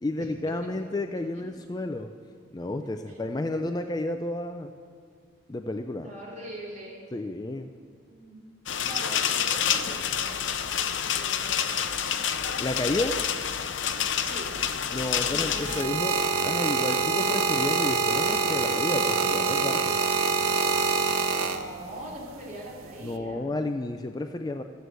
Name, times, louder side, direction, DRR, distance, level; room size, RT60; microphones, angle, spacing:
voice 1, 0.0-2.1 2.5-4.7 5.5-6.1 7.1-7.7 12.6-13.2 14.9-16.1 16.4-20.0 23.0-24.6, left 2 dB, 20° left, 7 dB, 0.3 m, -31 dB
voice 2, 1.1-1.6 2.8-3.8 6.0-7.0 8.1-8.5 8.8-10.7 11.1-11.8 14.2-14.5 15.2-15.8 21.4-23.5, right 1 dB, 35° right, -5 dB, 3.5 m, -43 dB
sound 1, 8.7-15.8, left 8 dB, 60° left, 0.6 m, -28 dB
sound 2, 15.2-22.0 22.8-23.2, right 5 dB, 85° right, 0.8 m, -25 dB
14.0 x 7.8 x 7.9 m, 2.2 s
head